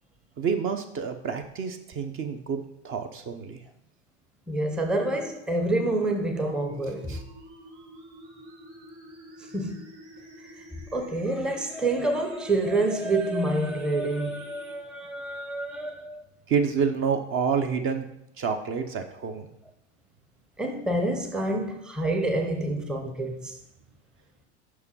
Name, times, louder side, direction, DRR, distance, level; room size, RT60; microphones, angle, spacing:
voice 1, 0.4-2.6 2.8-3.6 7.1-7.2 16.5-18.1 18.4-19.5, right 6 dB, 35° right, 0.7 m, -28 dB
voice 2, 4.5-7.2 9.4-9.8 10.9-16.2 20.6-23.6, right 2 dB, ahead, 0.7 m, -27 dB
sound 1, 4.7-14.7, right 1 dB, 75° right, 1.6 m, -48 dB
5.6 x 4.8 x 5.5 m
hypercardioid pair, 105°, 35 cm